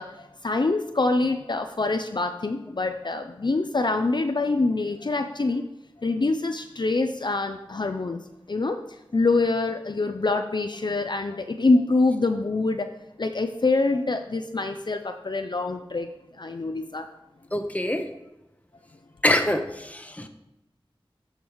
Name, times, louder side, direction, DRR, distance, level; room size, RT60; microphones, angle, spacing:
voice 1, 0.0-5.6 6.0-8.2 8.5-8.8 9.1-12.9 13.2-16.1 16.4-17.0, left 3 dB, 50° left, 6 dB, 0.5 m, -25 dB
voice 2, 17.5-18.0 19.2-19.6 19.9-20.3, left 1 dB, 15° left, 6 dB, 0.9 m, -24 dB
14.5 x 5.1 x 3.1 m, 0.92 s
wide cardioid pair, 55°, 10 cm